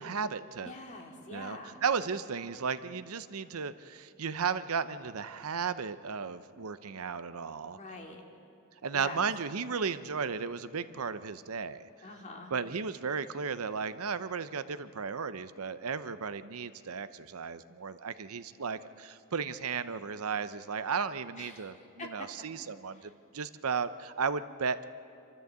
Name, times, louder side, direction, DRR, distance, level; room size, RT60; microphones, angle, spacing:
voice 1, 0.0-0.7 1.3-7.8 8.8-11.9 12.5-24.8, right 5 dB, 85° right, 13 dB, 0.7 m, -35 dB
voice 2, 0.6-1.8 7.7-8.2 8.9-9.2 12.0-12.5 21.4-21.7 22.0-22.1 22.9-23.1, left 2 dB, 35° left, 1 dB, 2.5 m, -45 dB
27.0 x 13.0 x 8.1 m, 2.6 s
head